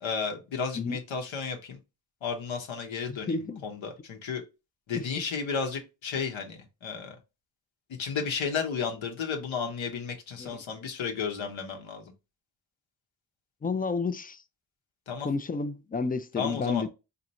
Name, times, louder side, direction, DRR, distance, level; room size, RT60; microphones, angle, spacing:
voice 1, 0.0-1.8 2.2-4.4 4.9-7.2 8.0-12.1 15.1-15.3 16.4-16.9, left 5 dB, 80° left, 1.0 m, -33 dB
voice 2, 3.1-3.6 4.9-5.0 10.4-10.6 13.6-14.4 15.2-16.9, left 4 dB, 20° left, 0.3 m, -31 dB
4.1 x 2.5 x 2.8 m
cardioid pair, 55°, 46 cm